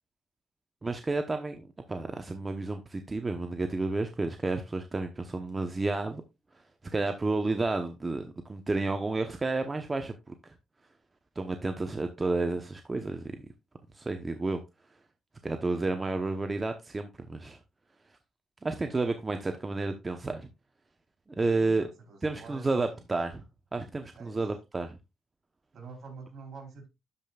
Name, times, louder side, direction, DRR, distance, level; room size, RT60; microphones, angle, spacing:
voice 1, 0.8-6.2 6.9-10.3 11.4-13.4 13.9-14.6 15.4-17.6 18.6-20.5 21.4-21.9 22.2-23.4 23.7-25.0, right 3 dB, 25° right, 0.8 m, -31 dB
voice 2, 21.4-23.0 24.1-24.5 25.7-26.9, right 4 dB, 60° right, 3.4 m, -47 dB
12.5 x 5.2 x 2.3 m
cardioid pair, 85°, 0 cm